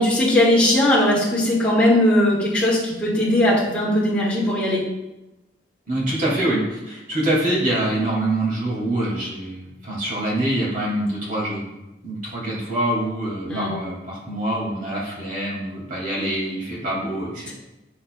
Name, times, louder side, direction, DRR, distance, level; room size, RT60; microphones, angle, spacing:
voice 1, 0.0-4.8 13.4-13.7 17.5-17.6, left 1 dB, 5° left, -7 dB, 2.1 m, -19 dB
voice 2, 5.9-11.7 12.0-17.5, right 1 dB, 50° right, -4 dB, 2.4 m, -25 dB
7.5 x 6.5 x 2.4 m, 0.98 s
head